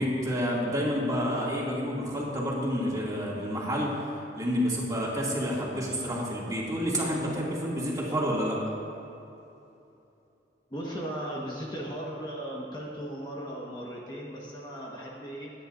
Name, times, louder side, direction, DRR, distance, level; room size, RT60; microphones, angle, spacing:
voice 1, 0.0-4.1 4.4-8.6, equal, 20° right, -6 dB, 2.5 m, -29 dB
voice 2, 10.7-15.5, right 1 dB, 25° left, -4 dB, 1.4 m, -37 dB
23.0 x 10.0 x 2.6 m, 2.8 s
head